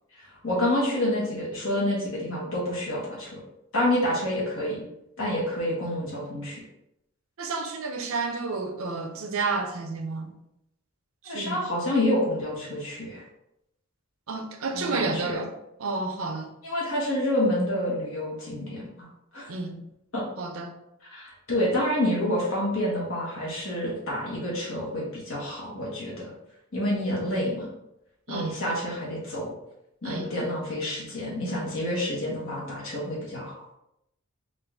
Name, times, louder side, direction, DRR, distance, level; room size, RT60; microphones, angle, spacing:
voice 1, 0.2-3.4 3.7-4.8 5.2-6.6 11.2-13.2 14.7-15.4 16.6-19.1 19.3-19.5 20.1-20.2 21.1-26.3 26.7-27.7 28.3-29.5 30.0-33.5, left 1 dB, 65° left, -5 dB, 1.3 m, -28 dB
voice 2, 7.4-10.3 11.2-11.6 14.3-15.5 15.8-16.5 19.5-19.8 20.4-20.7 28.3-28.5 30.0-30.3, right 3 dB, 70° right, 4 dB, 0.6 m, -30 dB
3.9 x 2.5 x 3.5 m, 0.84 s
head